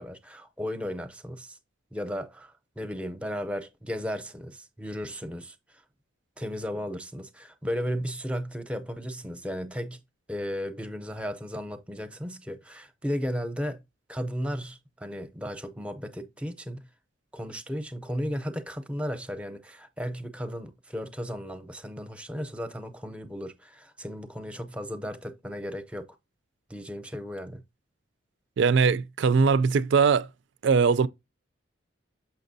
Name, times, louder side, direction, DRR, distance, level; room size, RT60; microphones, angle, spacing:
voice 1, 0.0-1.6 1.9-5.6 6.4-10.0 10.3-13.8 14.1-16.9 17.3-26.2 26.7-27.6, equal, 5° right, 0.6 m, -35 dB
voice 2, 28.6-30.3 30.6-31.1, right 5 dB, 65° right, 0.4 m, -21 dB
6.8 x 5.7 x 2.6 m
head